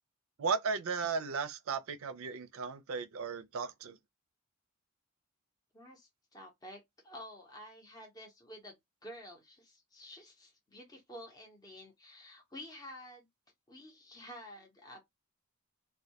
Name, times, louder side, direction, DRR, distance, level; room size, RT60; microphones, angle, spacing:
voice 1, 0.4-4.0, right 5 dB, 70° right, 0.4 m, -35 dB
voice 2, 5.7-8.8 9.0-13.3 13.7-15.0, left 1 dB, 20° left, 0.8 m, -50 dB
2.2 x 2.2 x 2.8 m
head